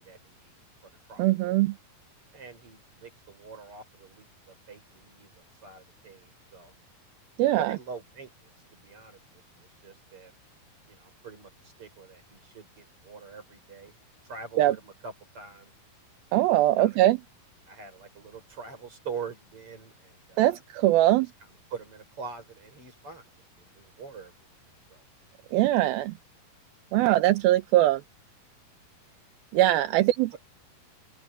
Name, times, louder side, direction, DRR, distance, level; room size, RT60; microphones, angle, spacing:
voice 1, 0.0-1.5 2.3-6.7 7.6-10.3 10.9-13.9 14.2-15.7 16.8-17.0 17.7-20.6 21.4-24.3 24.9-25.0 30.0-30.1, right 5 dB, 35° right, 6.7 m, -44 dB
voice 2, 1.2-1.7 7.4-7.7 14.6-14.8 16.3-17.2 20.4-21.3 25.5-26.1 26.9-28.0 29.5-30.3, right 15 dB, 80° right, 2.6 m, -22 dB
open air
omnidirectional pair, 4.4 m